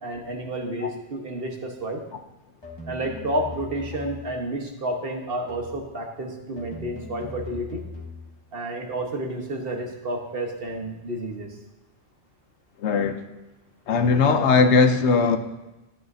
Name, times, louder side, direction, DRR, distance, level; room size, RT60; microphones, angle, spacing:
voice 1, 0.0-2.0 2.9-7.8 8.5-11.5, right 1 dB, 60° right, 1.4 m, -30 dB
sound 1, 2.6-4.4 5.5-5.9 6.6-8.3, left 2 dB, 25° left, 1.6 m, -39 dB
voice 2, 12.8-13.2 13.9-15.4, left 4 dB, 90° left, 1.0 m, -19 dB
13.0 x 8.9 x 2.7 m
omnidirectional pair, 1.1 m